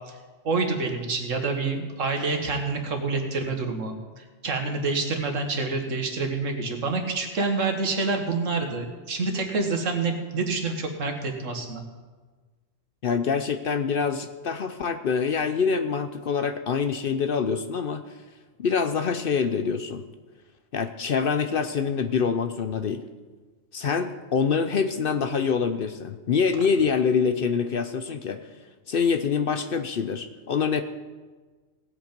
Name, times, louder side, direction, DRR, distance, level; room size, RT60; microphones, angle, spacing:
voice 1, 0.4-4.0 4.4-11.8, right 3 dB, 80° right, 5 dB, 1.8 m, -27 dB
voice 2, 13.0-18.0 18.6-20.1 20.7-23.0 23.7-28.4 28.9-30.8, left 6 dB, 55° left, 10 dB, 0.7 m, -25 dB
17.5 x 8.1 x 5.2 m, 1.4 s
omnidirectional pair, 1.3 m